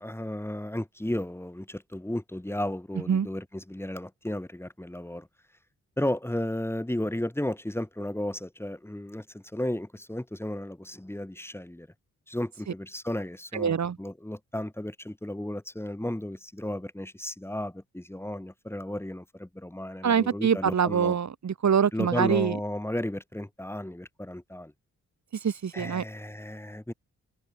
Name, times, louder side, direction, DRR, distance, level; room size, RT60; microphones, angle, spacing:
voice 1, 0.0-5.3 6.0-11.9 12.3-21.2 21.9-24.7 25.7-26.9, left 1 dB, 10° left, 7.4 m, -34 dB
voice 2, 13.5-14.0 20.0-22.6 25.4-26.0, right 7 dB, 60° right, 4.7 m, -25 dB
open air
cardioid pair, 85°, 31 cm